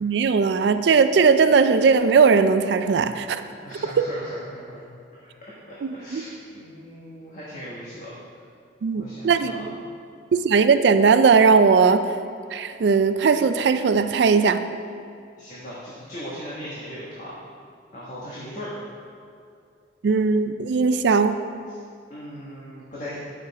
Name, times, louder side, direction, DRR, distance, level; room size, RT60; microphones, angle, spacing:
voice 1, 0.0-3.4 4.0-4.1 5.8-6.2 8.8-9.7 10.3-12.1 12.5-14.6 20.0-21.3, right 5 dB, 65° right, 10 dB, 0.4 m, -18 dB
voice 2, 3.5-4.9 5.2-8.1 8.9-9.8 15.4-17.3 17.9-18.7 21.7-21.8 22.1-23.2, equal, 45° left, -8 dB, 1.4 m, -38 dB
8.8 x 6.4 x 4.1 m, 2.4 s
head